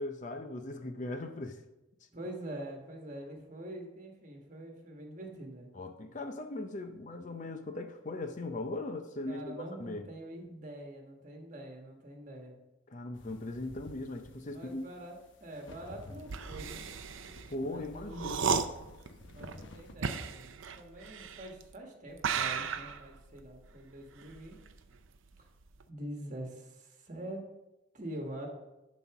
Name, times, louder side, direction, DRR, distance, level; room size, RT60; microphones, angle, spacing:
voice 1, 0.0-1.6 5.7-10.1 12.9-14.8 17.5-18.6, left 2 dB, 35° left, 6 dB, 0.6 m, -39 dB
voice 2, 2.1-5.7 9.3-12.5 14.5-16.8 17.6-18.3 19.3-24.6 25.4-25.5 25.9-27.4 27.9-28.5, right 1 dB, 35° right, 1 dB, 1.4 m, -45 dB
sound 1, 13.1-19.9, left 2 dB, 65° left, 0.9 m, -53 dB
sound 2, 16.2-21.7 22.2-25.1 25.4-25.8, right 6 dB, 70° right, 0.6 m, -35 dB
11.0 x 4.1 x 5.9 m, 1.0 s
head